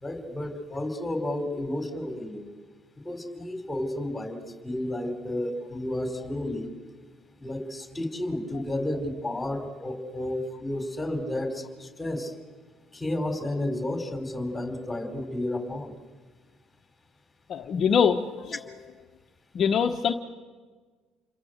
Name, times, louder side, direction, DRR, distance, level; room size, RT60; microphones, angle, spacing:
voice 1, 0.0-2.5 3.0-6.7 7.4-12.3 12.9-15.9, left 1 dB, 15° left, 6 dB, 4.5 m, -32 dB
voice 2, 17.5-18.6 19.5-20.1, left 7 dB, 55° left, 4 dB, 1.2 m, -24 dB
29.0 x 23.0 x 8.1 m, 1.5 s
supercardioid pair, 85°, 0 cm